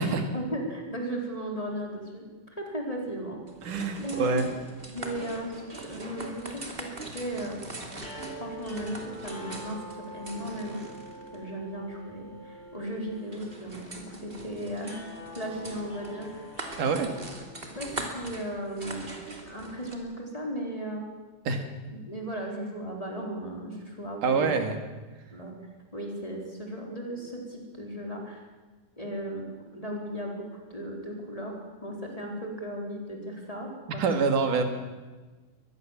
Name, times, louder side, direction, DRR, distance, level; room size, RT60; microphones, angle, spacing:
voice 1, 0.0-2.2 2.6-3.4 4.0-4.5 4.9-7.6 7.9-8.0 8.4-9.8 10.1-10.8 11.3-15.0 15.3-16.5 17.0-17.1 17.7-19.1 19.5-21.1 21.9-24.6 25.3-25.5 25.9-28.4 29.0-29.4 29.7-34.3, right 1 dB, 10° left, 0 dB, 3.8 m, -36 dB
sound 1, 3.5-20.0, right 2 dB, 20° right, 2.2 m, -42 dB
voice 2, 3.6-4.5 16.8-17.1 21.4-21.6 24.2-24.8 33.9-34.6, right 4 dB, 60° right, 6 dB, 3.4 m, -26 dB
sound 2, 8.0-18.2, right 1 dB, 35° left, 5.2 m, -45 dB
23.0 x 20.0 x 7.4 m, 1.3 s
omnidirectional pair, 4.4 m